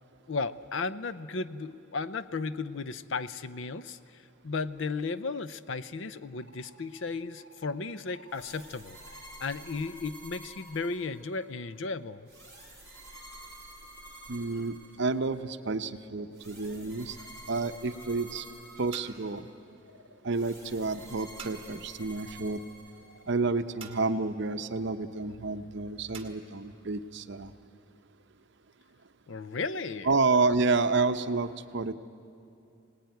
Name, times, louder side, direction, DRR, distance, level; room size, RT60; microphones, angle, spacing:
voice 1, 0.3-9.0 9.4-12.3 29.3-30.1, left 4 dB, 60° left, 14 dB, 0.6 m, -35 dB
sound 1, 6.2-11.5 11.8-25.1, equal, 80° left, 3.4 m, -59 dB
sound 2, 8.3-11.5 12.3-15.4 16.3-19.5 20.3-23.4, right 2 dB, 15° left, 4.5 m, -50 dB
voice 2, 14.3-17.2 17.5-18.5 18.8-19.4 20.2-22.6 23.3-27.5 30.0-31.9, right 3 dB, 55° right, 10 dB, 0.7 m, -29 dB
sound 3, 18.7-26.3, right 7 dB, 25° right, 1.6 m, -52 dB
23.5 x 19.0 x 9.3 m, 2.6 s
head